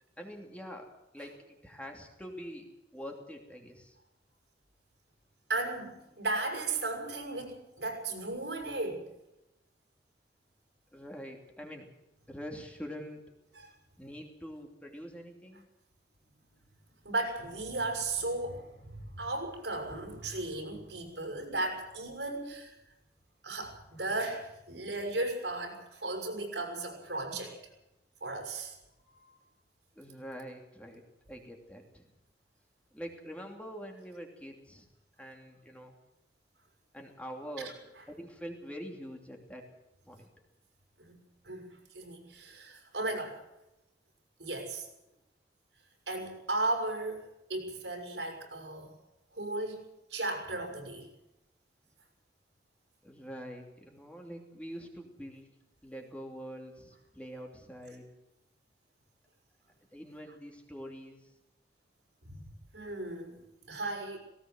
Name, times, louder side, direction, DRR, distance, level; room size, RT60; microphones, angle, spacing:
voice 1, 0.2-3.9 10.9-11.9 12.3-13.3 14.0-15.6 29.9-32.1 32.9-34.9 35.2-35.9 36.9-37.8 38.1-39.7 40.0-40.3 53.0-55.5 55.8-58.1 59.9-61.3, equal, 5° left, 1 dB, 2.9 m, -45 dB
voice 2, 5.5-9.1 13.5-13.7 17.0-22.7 23.4-27.5 28.2-28.8 29.1-29.4 37.6-37.7 41.0-41.2 41.4-43.4 44.4-44.9 46.1-47.2 47.5-48.9 49.3-51.1 62.2-62.5 62.7-63.4 63.7-64.2, right 2 dB, 85° right, 3 dB, 6.1 m, -36 dB
18.5 x 18.0 x 7.9 m, 0.91 s
head